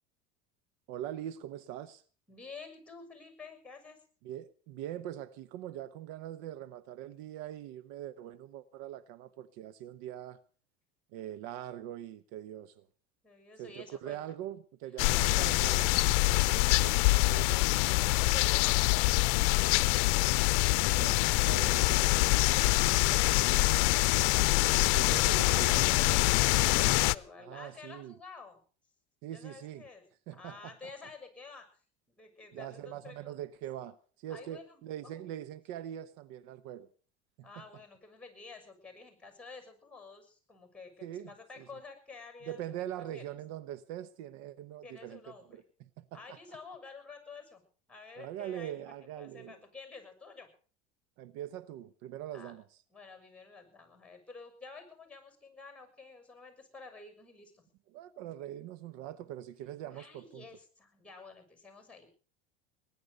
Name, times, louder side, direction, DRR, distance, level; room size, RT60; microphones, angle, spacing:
voice 1, 0.9-2.0 4.2-10.4 11.1-12.9 13.6-17.7 21.0-22.2 24.9-25.9 27.4-28.2 29.2-29.8 30.3-30.7 32.5-36.9 37.4-37.6 41.0-41.3 41.6-41.7 42.5-46.4 48.2-49.6 51.2-52.7 57.9-60.5, right 12 dB, 65° right, 1.0 m, -43 dB
voice 2, 2.3-4.0 13.2-14.2 18.1-20.2 22.7-23.6 25.8-28.6 29.3-30.0 30.3-31.7 32.1-33.4 34.3-35.2 37.4-43.2 44.8-45.6 46.1-47.6 47.9-48.7 49.2-50.5 52.3-52.5 52.9-57.6 59.9-62.1, left 4 dB, 5° left, 6.8 m, -50 dB
sound 1, 15.0-27.2, left 23 dB, 60° left, 0.7 m, -25 dB
20.0 x 11.0 x 6.6 m
hypercardioid pair, 95°, 33 cm